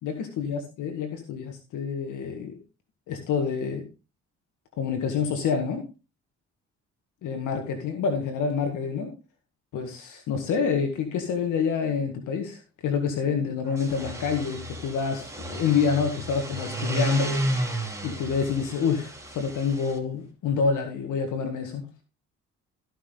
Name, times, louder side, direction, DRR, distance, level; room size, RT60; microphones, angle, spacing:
voice 1, 0.0-2.6 3.1-3.9 4.8-5.8 7.2-9.1 9.7-17.5 18.0-21.8, left 6 dB, 80° left, 1.9 m, -27 dB
sound 1, 13.7-20.0, right 1 dB, 10° right, 2.7 m, -32 dB
14.5 x 6.1 x 3.9 m
cardioid pair, 90°, 30 cm